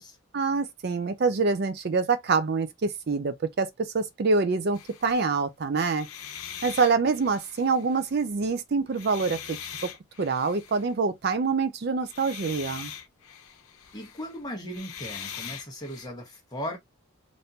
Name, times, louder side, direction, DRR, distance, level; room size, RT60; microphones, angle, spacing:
voice 1, 0.3-6.1 6.6-9.9 10.2-12.9, right 4 dB, 50° right, 0.4 m, -26 dB
sound 1, 4.7-5.3 5.9-8.4 8.8-10.9 12.0-16.1, left 8 dB, 85° left, 0.7 m, -42 dB
voice 2, 13.9-16.8, equal, 20° left, 1.0 m, -37 dB
3.5 x 2.6 x 2.7 m
head